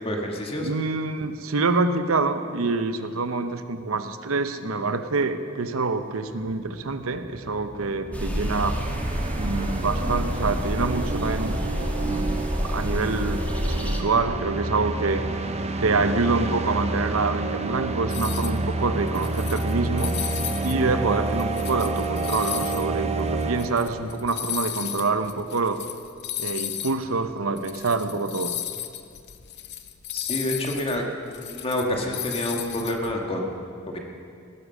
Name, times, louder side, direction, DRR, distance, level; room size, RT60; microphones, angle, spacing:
voice 1, 0.0-0.7 30.1-31.0 31.4-33.5 33.9-34.0, left 1 dB, 30° left, 1 dB, 1.8 m, -28 dB
voice 2, 0.6-8.8 9.4-11.6 12.0-15.2 15.8-20.1 20.6-25.8 26.4-28.6, right 3 dB, 80° right, 10 dB, 0.9 m, -26 dB
sound 1, 6.4-6.5 6.7-24.1, right 2 dB, 30° right, 0.8 m, -29 dB
sound 2, 8.1-14.0, equal, 5° left, 1.6 m, -29 dB
sound 3, 18.1-18.6 19.0-20.8 21.2-27.0 27.3-27.4 27.6-33.1, left 12 dB, 55° left, 0.8 m, -34 dB
18.0 x 10.0 x 6.6 m, 2.3 s
head